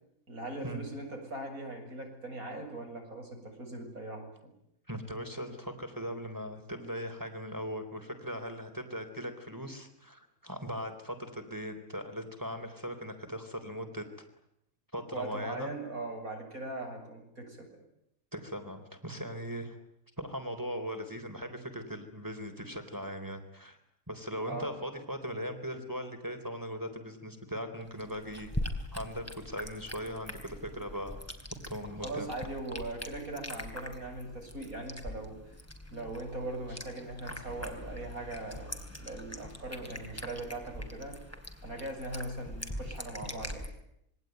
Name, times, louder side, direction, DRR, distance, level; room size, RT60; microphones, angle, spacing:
voice 1, 0.3-4.5 15.1-17.8 24.5-24.7 32.0-35.6 35.9-41.2 41.6-43.7, right 2 dB, 80° right, 3 dB, 8.2 m, -40 dB
voice 2, 4.9-14.1 14.9-15.7 18.3-19.8 20.2-23.8 24.1-28.5 28.9-31.2 31.7-32.3 36.7-36.8, equal, 15° right, 6 dB, 3.9 m, -39 dB
sound 1, 27.8-43.7, left 1 dB, 10° left, 3.7 m, -42 dB
27.0 x 23.0 x 9.3 m, 0.77 s
omnidirectional pair, 1.5 m